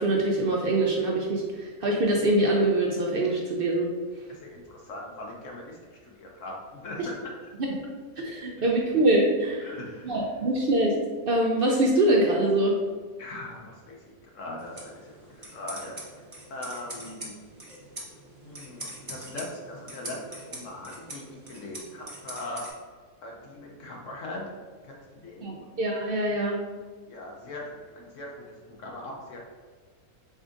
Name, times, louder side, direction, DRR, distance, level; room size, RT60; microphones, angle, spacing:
voice 1, 0.0-3.9 7.0-7.1 8.2-9.7 10.0-10.9 11.3-12.7 25.4-26.6, right 1 dB, 65° right, -1 dB, 0.5 m, -24 dB
voice 2, 4.3-5.8 6.0-7.1 7.4-7.5 8.6-8.7 9.6-10.2 13.2-16.2 16.5-17.4 18.4-22.7 23.2-24.5 24.8-25.5 27.1-29.4, left 2 dB, 65° left, -1 dB, 1.0 m, -40 dB
sound 1, 14.6-22.7, right 1 dB, 25° right, 0.9 m, -43 dB
5.1 x 3.6 x 2.5 m, 1.5 s
omnidirectional pair, 1.5 m